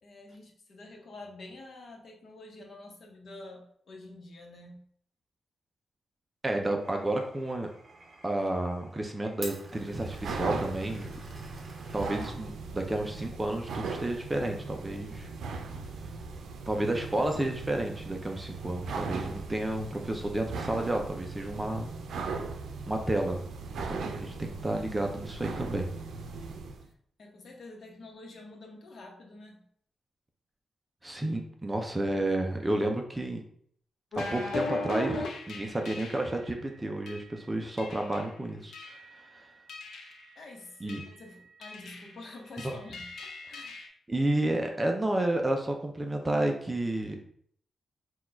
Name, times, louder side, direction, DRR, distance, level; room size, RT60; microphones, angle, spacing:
voice 1, 0.0-4.8 26.8-26.9 27.2-29.6 40.4-43.8, left 2 dB, 55° left, 1 dB, 0.9 m, -48 dB
voice 2, 6.4-7.7 8.2-11.1 11.9-15.3 16.7-21.9 22.9-23.4 23.9-25.9 31.0-33.4 34.3-38.7 39.1-39.5 40.8-41.0 42.6-42.8 44.1-47.2, right 1 dB, 15° right, 3 dB, 0.5 m, -31 dB
Glass, 6.8-13.1, right 3 dB, 40° right, 0.8 m, -50 dB
sound 1, 9.7-26.9, right 4 dB, 85° right, 0.5 m, -39 dB
sound 2, 34.1-36.4 37.1-37.3 37.8-38.3 38.7-39.2 39.7-40.2 40.9-41.2 41.6-42.1 42.6-43.9, left 2 dB, 80° left, 0.7 m, -38 dB
4.2 x 2.3 x 4.3 m, 0.63 s
wide cardioid pair, 155°, 0 cm